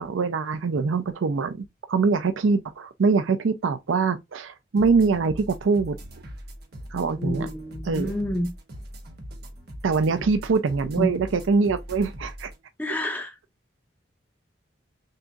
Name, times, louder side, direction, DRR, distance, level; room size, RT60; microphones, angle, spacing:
voice 1, 0.0-6.0 6.9-7.5 7.8-8.1 9.8-12.5, right 4 dB, 90° right, 0.5 m, -23 dB
sound 1, 4.8-12.6, equal, 55° right, 1.2 m, -41 dB
voice 2, 7.1-8.5 11.0-11.1 12.8-13.4, left 1 dB, 10° left, 0.5 m, -28 dB
6.6 x 2.6 x 2.4 m
head